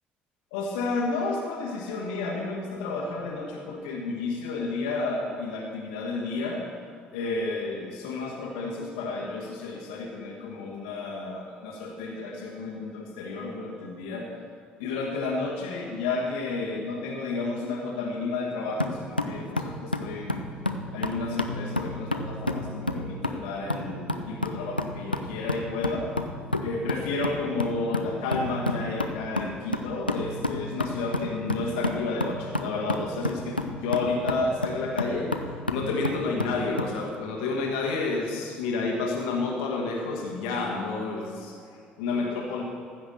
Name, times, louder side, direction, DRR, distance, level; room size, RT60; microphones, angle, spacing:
voice 1, 0.5-6.6 7.1-14.3 14.8-20.4 20.9-26.1 26.6-41.5 42.0-42.6, left 3 dB, 65° left, -1 dB, 1.4 m, -31 dB
sound 1, 18.8-37.0, left 2 dB, 90° left, 0.5 m, -31 dB
15.0 x 6.0 x 6.6 m, 2.3 s
figure-of-eight pair, 55°, 5 cm